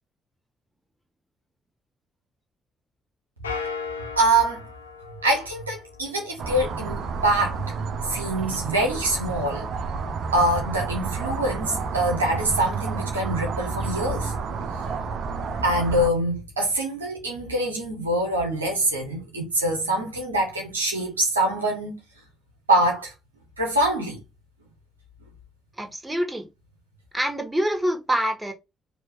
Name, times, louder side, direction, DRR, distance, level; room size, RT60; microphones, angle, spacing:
sound 1, 3.4-6.1, left 5 dB, 80° left, 0.5 m, -36 dB
voice 1, 4.2-4.7 5.2-7.6 8.1-9.7 10.3-14.3 15.6-22.0 22.7-23.1 23.6-24.2, right 1 dB, 85° right, 0.8 m, -24 dB
sound 2, 6.4-16.1, right 5 dB, 55° right, 0.6 m, -30 dB
voice 2, 25.8-26.5 27.1-28.5, equal, 10° right, 1.7 m, -25 dB
4.7 x 2.7 x 4.1 m
figure-of-eight pair, 40°, 0 cm